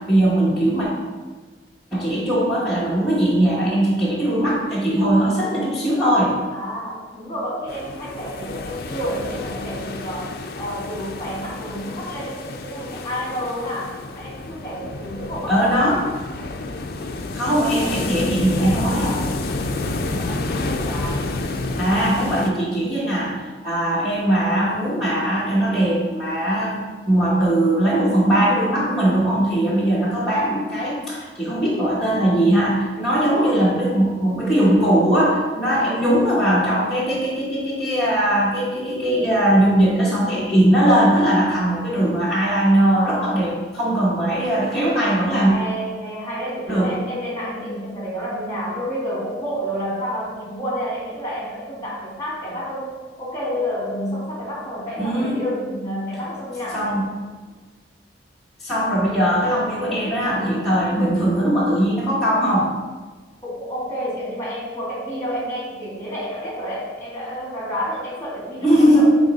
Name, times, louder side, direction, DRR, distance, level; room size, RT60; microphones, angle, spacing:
voice 1, 0.1-0.9 1.9-6.3 15.5-16.1 17.3-19.1 20.2-20.3 21.8-45.5 46.7-46.9 55.0-55.4 56.7-57.1 58.6-62.7 68.6-69.1, right 1 dB, ahead, -10 dB, 1.1 m, -20 dB
voice 2, 6.5-15.9 17.4-18.1 18.4-21.3 33.0-33.8 35.8-36.0 42.6-43.6 45.4-52.9 53.2-57.0 63.4-69.1, equal, 15° left, -5 dB, 2.0 m, -30 dB
sound 1, 7.7-22.5, left 2 dB, 55° left, 0.5 m, -29 dB
9.1 x 3.1 x 4.1 m, 1.4 s
head